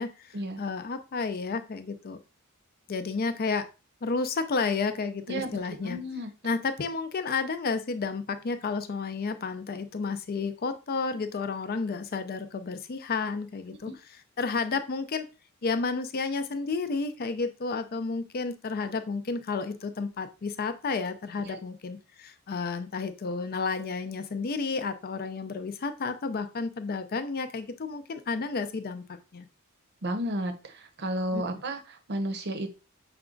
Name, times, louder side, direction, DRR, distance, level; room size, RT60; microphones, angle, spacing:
voice 1, 0.6-2.2 2.9-3.6 4.0-6.0 6.4-13.9 14.4-15.3 15.6-29.0 29.3-29.5 31.3-31.4, left 4 dB, 45° left, 10 dB, 0.5 m, -31 dB
voice 2, 5.3-6.3 13.8-13.9 21.4-21.6 30.0-32.7, equal, 50° right, 6 dB, 0.7 m, -33 dB
5.9 x 2.3 x 3.8 m, 0.31 s
head